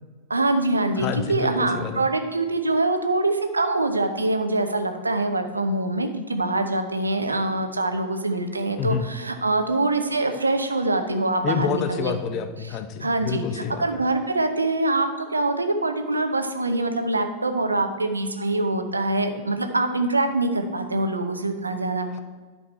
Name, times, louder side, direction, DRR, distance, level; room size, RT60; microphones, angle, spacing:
voice 1, 0.3-12.1 13.0-22.1, right 2 dB, 80° right, 7 dB, 0.8 m, -24 dB
voice 2, 1.0-2.1 8.8-9.1 11.4-14.1 22.1-22.2, left 7 dB, 35° left, 9 dB, 0.8 m, -28 dB
11.5 x 5.8 x 4.4 m, 1.4 s
figure-of-eight pair, 90°, 0 cm